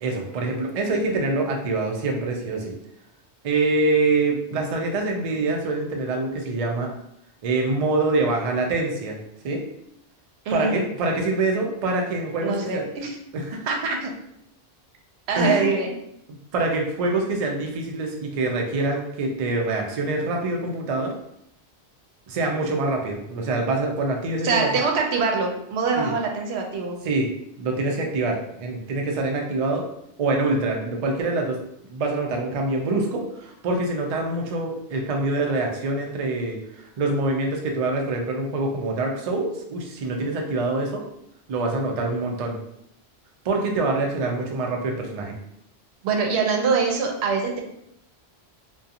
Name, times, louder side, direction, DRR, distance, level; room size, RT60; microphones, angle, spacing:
voice 1, 0.0-2.8 3.4-6.9 7.4-9.2 9.4-9.6 10.5-12.8 13.3-14.1 15.4-15.7 16.5-21.1 22.3-24.7 26.0-26.1 27.0-27.3 27.6-29.8 30.2-31.6 31.9-41.0 41.5-42.6 43.4-45.4, right 2 dB, 55° right, 1 dB, 0.4 m, -25 dB
voice 2, 10.5-10.8 12.4-13.2 15.3-15.9 24.4-27.0 46.0-47.6, right 4 dB, 90° right, 2 dB, 0.8 m, -24 dB
2.7 x 2.2 x 2.4 m, 0.75 s
omnidirectional pair, 1.1 m